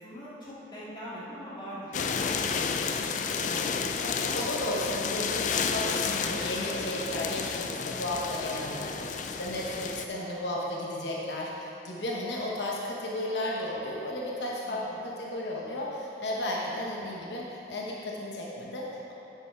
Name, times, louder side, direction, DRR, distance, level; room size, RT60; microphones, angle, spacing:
voice 1, 0.0-3.3 14.7-15.0, equal, 25° left, -9 dB, 2.2 m, -43 dB
sound 1, 1.9-10.0, left 5 dB, 45° left, 0.4 m, -31 dB
voice 2, 3.4-19.1, left 1 dB, 80° left, -3 dB, 1.0 m, -34 dB
9.0 x 6.9 x 4.6 m, 3.0 s
head